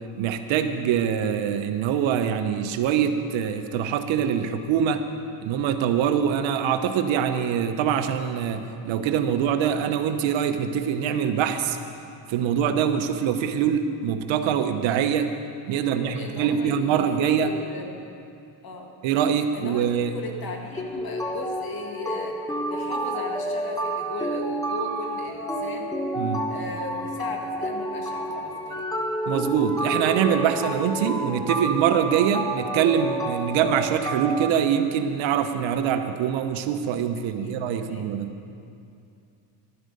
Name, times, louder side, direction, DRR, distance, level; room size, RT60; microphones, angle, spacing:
voice 1, 0.1-5.0 5.4-11.8 12.3-15.3 15.7-17.5 19.0-20.1 26.2-26.5 29.3-38.3, right 8 dB, 65° right, 8 dB, 1.0 m, -24 dB
voice 2, 15.7-17.9 18.6-18.9 19.5-22.4 22.7-25.9 26.5-28.9 37.2-38.1, left 3 dB, 45° left, 2 dB, 1.8 m, -37 dB
sound 1, 20.8-34.5, right 1 dB, 5° left, 1.1 m, -29 dB
11.5 x 11.5 x 5.3 m, 2.5 s
supercardioid pair, 95°, 49 cm